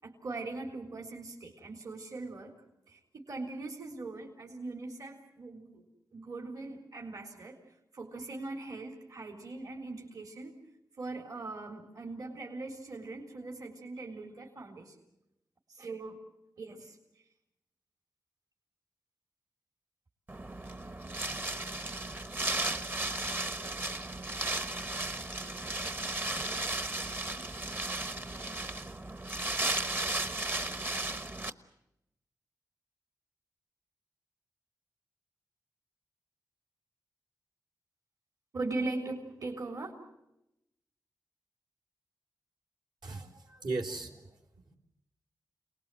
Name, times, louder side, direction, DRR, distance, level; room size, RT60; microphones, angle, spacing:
voice 1, 0.0-2.5 2.9-7.6 7.9-10.5 11.0-15.0 15.7-16.2 16.6-17.0 38.5-39.9, right 3 dB, 55° right, 2 dB, 3.8 m, -40 dB
Wind, 20.3-31.5, right 2 dB, 30° right, 1.2 m, -35 dB
voice 2, 43.0-44.4 44.6-44.8, right 3 dB, 70° right, 0 dB, 4.1 m, -38 dB
29.0 x 20.0 x 7.8 m, 0.87 s
wide cardioid pair, 105°, 7 cm